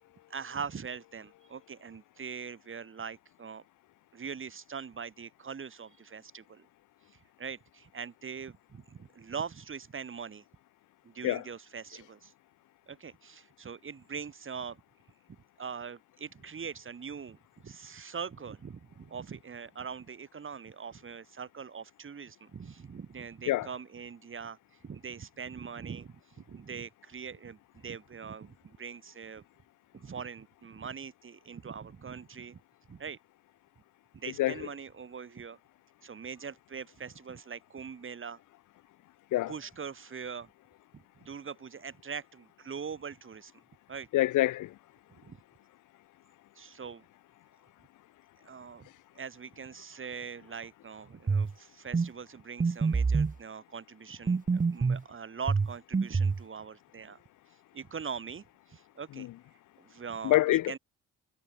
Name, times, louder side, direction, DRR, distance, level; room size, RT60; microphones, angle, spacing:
voice 1, 0.3-3.6 4.1-6.7 7.1-10.4 11.0-12.3 12.9-14.8 15.6-24.6 24.8-29.4 29.9-32.6 32.9-33.2 34.1-35.6 36.0-38.4 39.5-40.5 40.9-43.5 43.9-44.1 45.2-45.4 46.5-47.0 48.4-48.9 49.1-57.2 57.7-59.3 59.8-60.8, right 6 dB, 40° right, 5.2 m, -42 dB
voice 2, 44.1-44.7 60.2-60.8, left 15 dB, 80° left, 1.3 m, -25 dB
sound 1, 51.3-51.5 51.9-52.1 52.6-53.4 54.3-55.0 55.5-56.4, right 4 dB, 25° right, 1.8 m, -26 dB
cardioid pair, 90°, 30 cm